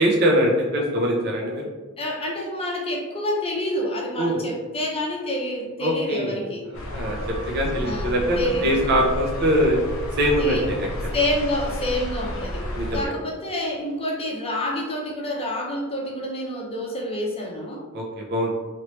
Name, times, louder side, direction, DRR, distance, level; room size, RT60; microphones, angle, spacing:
voice 1, 0.0-1.6 4.2-4.4 5.8-6.4 6.7-7.2 7.5-9.8 10.2-11.1 12.8-13.2 17.9-18.5, equal, 50° right, -1 dB, 0.5 m, -22 dB
voice 2, 2.0-6.7 7.8-8.9 10.4-10.7 11.1-17.8, left 1 dB, 25° left, -1 dB, 0.6 m, -28 dB
sound 1, 6.7-13.1, left 1 dB, 70° left, 0.6 m, -31 dB
3.1 x 2.9 x 3.0 m, 1.3 s
head